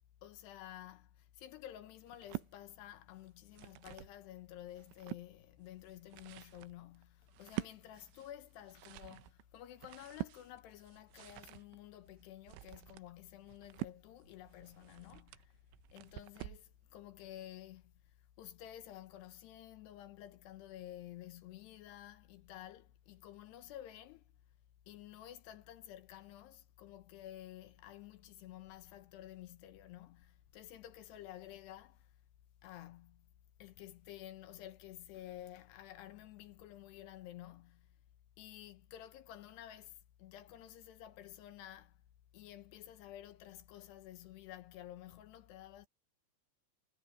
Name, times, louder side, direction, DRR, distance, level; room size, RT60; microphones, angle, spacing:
voice 1, 0.2-15.6 15.9-24.2 24.9-32.1 32.6-33.3 33.6-37.9 38.4-42.0 42.3-45.9, left 13 dB, 75° left, 2.8 m, -52 dB
sound 1, 2.1-2.5 3.3-4.2 4.6-5.3 5.9-16.7, right 18 dB, 90° right, 3.2 m, -47 dB
omnidirectional pair, 5.6 m